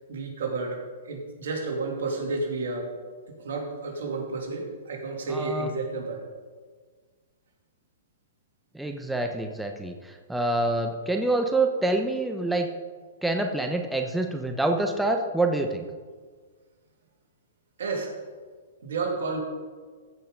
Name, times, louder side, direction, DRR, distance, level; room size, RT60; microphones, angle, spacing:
voice 1, 0.1-0.8 1.0-2.9 3.3-6.2 17.8-18.1 18.8-19.4, right 3 dB, 75° right, 1 dB, 2.7 m, -31 dB
voice 2, 5.3-5.7 8.7-12.7 13.2-15.9, right 2 dB, 5° right, 4 dB, 0.8 m, -26 dB
15.0 x 5.6 x 5.3 m, 1.5 s
hypercardioid pair, 135°, 0 cm